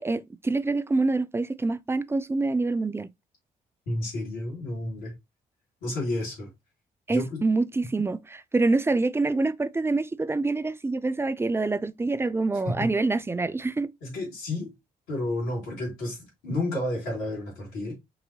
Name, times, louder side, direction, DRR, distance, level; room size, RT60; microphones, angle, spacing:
voice 1, 0.0-3.1 7.1-13.9, right 3 dB, 10° right, 0.3 m, -26 dB
voice 2, 3.9-5.1 5.8-6.5 7.1-7.4 12.6-12.9 14.0-14.7 15.1-17.9, left 1 dB, 75° left, 2.1 m, -31 dB
5.3 x 2.7 x 2.7 m
figure-of-eight pair, 45°, 20 cm